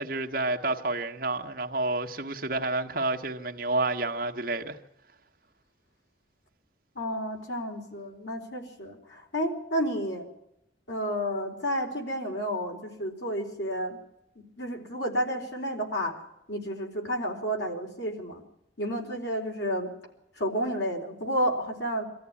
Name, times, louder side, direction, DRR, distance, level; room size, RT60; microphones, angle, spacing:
voice 1, 0.0-4.8, right 2 dB, 50° right, 1.4 m, -29 dB
voice 2, 7.0-10.3 10.9-14.0 14.6-16.1 16.5-18.4 18.8-19.9 20.4-22.0, equal, 75° left, 4.3 m, -31 dB
23.5 x 14.5 x 9.8 m
head